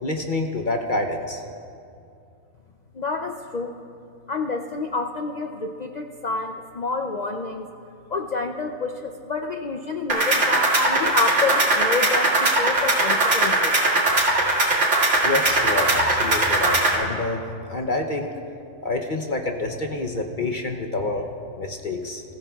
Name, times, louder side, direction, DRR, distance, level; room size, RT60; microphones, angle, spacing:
voice 1, 0.0-1.4 15.2-18.3 18.8-21.3 21.6-22.2, left 2 dB, 45° left, 2 dB, 0.8 m, -27 dB
voice 2, 2.9-3.8 4.3-7.7 8.1-13.7, left 3 dB, 65° left, 4 dB, 0.4 m, -28 dB
sound 1, 10.1-16.9, right 2 dB, 60° right, 2.4 m, -20 dB
22.0 x 14.5 x 2.3 m, 2.5 s
omnidirectional pair, 1.4 m